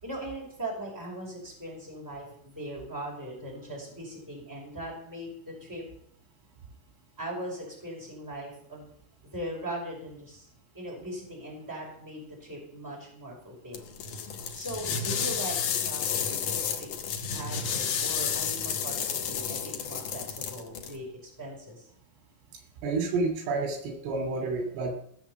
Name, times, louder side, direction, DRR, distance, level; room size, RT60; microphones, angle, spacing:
voice 1, 0.0-5.8 7.2-8.9 9.3-10.5 10.7-14.0 14.5-16.9 17.3-21.9, right 1 dB, 5° right, -2 dB, 4.9 m, -39 dB
sound 1, 13.7-21.0, left 7 dB, 75° left, 1.9 m, -31 dB
voice 2, 22.8-24.9, right 3 dB, 80° right, 4 dB, 5.1 m, -29 dB
16.5 x 7.6 x 7.0 m, 0.67 s
omnidirectional pair, 5.5 m